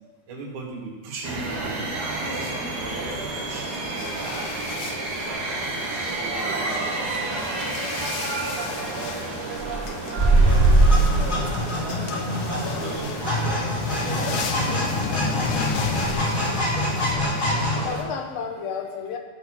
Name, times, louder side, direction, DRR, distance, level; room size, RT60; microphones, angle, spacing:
voice 1, 0.3-1.7 2.1-6.6 7.3-8.4 12.8-13.2 13.7-15.1, right 3 dB, 75° right, -1 dB, 3.2 m, -39 dB
sound 1, 1.2-18.0, right 2 dB, 45° right, 1.5 m, -26 dB
sound 2, 4.0-17.2, left 7 dB, 90° left, 2.3 m, -36 dB
sound 3, 10.4-17.9, left 2 dB, 25° left, 1.2 m, -27 dB
voice 2, 12.1-13.1 14.2-14.5 16.1-16.5 17.8-19.2, left 6 dB, 65° left, 4 dB, 2.1 m, -34 dB
14.0 x 5.8 x 6.1 m, 1.4 s
omnidirectional pair, 3.4 m